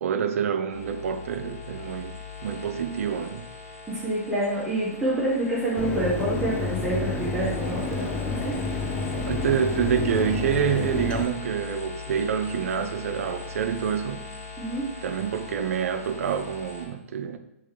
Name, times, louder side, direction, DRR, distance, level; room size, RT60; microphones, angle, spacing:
voice 1, 0.0-3.5 9.1-14.2 15.0-17.4, right 7 dB, 65° right, 0.5 m, -27 dB
sound 1, 0.7-16.9, left 4 dB, 80° left, 1.3 m, -40 dB
voice 2, 3.9-8.5 14.6-14.9, right 1 dB, 5° right, 0.8 m, -27 dB
Mechanisms, 5.8-11.2, left 4 dB, 10° left, 0.4 m, -30 dB
4.1 x 3.2 x 3.7 m
hypercardioid pair, 145°, 8 cm